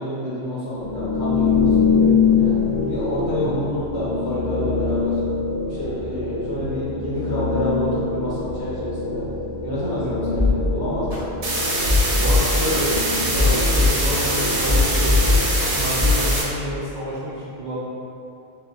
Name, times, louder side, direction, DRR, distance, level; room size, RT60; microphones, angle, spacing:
voice 1, 0.0-2.6 2.8-5.2 5.6-9.2 9.6-11.2 15.7-16.1, equal, 85° left, -9 dB, 1.5 m, -28 dB
sound 1, 0.7-16.5, left 5 dB, 55° left, 0.6 m, -24 dB
voice 2, 10.0-10.4 12.0-15.4 15.8-17.8, equal, 55° right, -8 dB, 0.6 m, -29 dB
sound 2, 10.3-10.5 11.1-11.2 11.7-12.7 13.2-14.3 14.7-15.7 16.0-16.2, left 3 dB, 35° right, 1.3 m, -18 dB
sound 3, 11.4-16.4, right 2 dB, 80° right, 1.1 m, -24 dB
4.7 x 2.2 x 3.7 m, 2.8 s
omnidirectional pair, 1.1 m